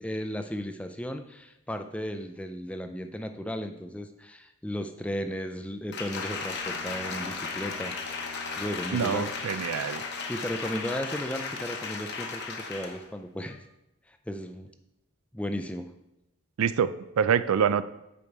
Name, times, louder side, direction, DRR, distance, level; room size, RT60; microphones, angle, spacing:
voice 1, 0.0-7.9 8.6-9.3 10.3-13.6 14.1-14.7 15.3-15.9, equal, 5° left, 7 dB, 0.4 m, -35 dB
Applause, 5.9-13.1 13.5-13.6, left 4 dB, 50° left, 0.9 m, -35 dB
Bowed string instrument, 6.3-10.5, left 2 dB, 20° right, 1.2 m, -49 dB
voice 2, 8.9-10.0 16.6-17.8, right 7 dB, 80° right, 14 dB, 0.4 m, -26 dB
8.5 x 5.2 x 4.6 m, 0.90 s
head